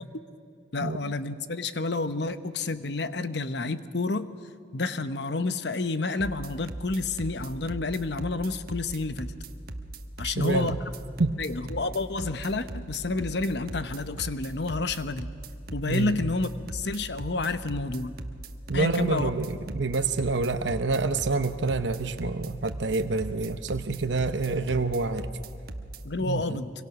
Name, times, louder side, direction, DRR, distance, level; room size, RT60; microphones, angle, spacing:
voice 1, 0.7-4.3 4.7-9.3 10.2-10.7 11.4-15.3 15.7-18.1 18.7-19.3 26.0-26.7, left 3 dB, 65° left, 11 dB, 0.9 m, -29 dB
sound 1, 6.2-26.0, right 2 dB, 50° right, 1.2 m, -39 dB
voice 2, 10.2-10.8 11.2-11.4 15.9-16.2 18.7-25.3 26.3-26.6, right 3 dB, 75° right, 9 dB, 0.9 m, -27 dB
25.5 x 24.0 x 6.1 m, 2.3 s
head